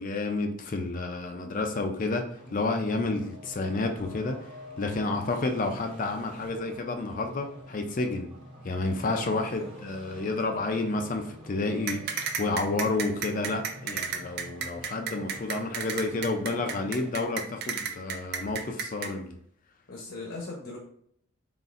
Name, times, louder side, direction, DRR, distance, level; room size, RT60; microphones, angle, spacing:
voice 1, 0.0-4.4 4.8-8.3 8.6-19.4, left 3 dB, 40° left, 5 dB, 0.4 m, -30 dB
sound 1, 2.3-17.1, equal, 25° right, 0.9 m, -48 dB
voice 2, 9.0-9.7 19.9-20.8, left 2 dB, 60° left, -2 dB, 0.8 m, -39 dB
sound 2, 11.9-19.1, right 6 dB, 50° right, 0.4 m, -32 dB
4.1 x 3.7 x 2.4 m, 0.66 s
head